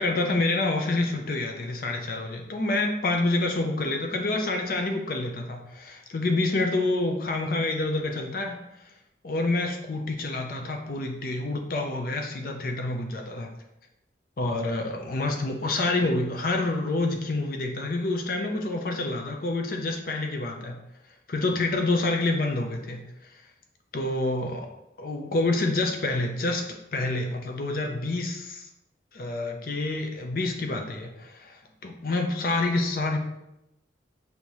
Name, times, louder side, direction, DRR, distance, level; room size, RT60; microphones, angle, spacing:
voice 1, 0.0-8.6 9.2-13.5 14.4-20.8 21.3-23.0 23.9-24.7 25.0-26.6 26.9-28.7 29.1-33.2, left 2 dB, 50° left, 3 dB, 0.5 m, -27 dB
6.4 x 2.7 x 2.9 m, 0.88 s
head